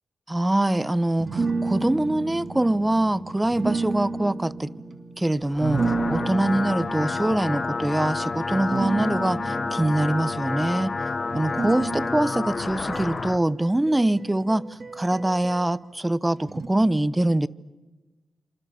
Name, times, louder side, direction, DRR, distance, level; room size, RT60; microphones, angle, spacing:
voice 1, 0.3-4.7 5.2-10.9 11.3-14.6 14.9-17.5, right 1 dB, 15° right, 1.0 m, -24 dB
sound 1, 1.2-15.7 16.5-16.7, right 3 dB, 55° right, 2.3 m, -32 dB
sound 2, 5.4-13.4, left 4 dB, 45° left, 1.1 m, -29 dB
28.0 x 26.0 x 7.0 m
cardioid pair, 50°, 0 cm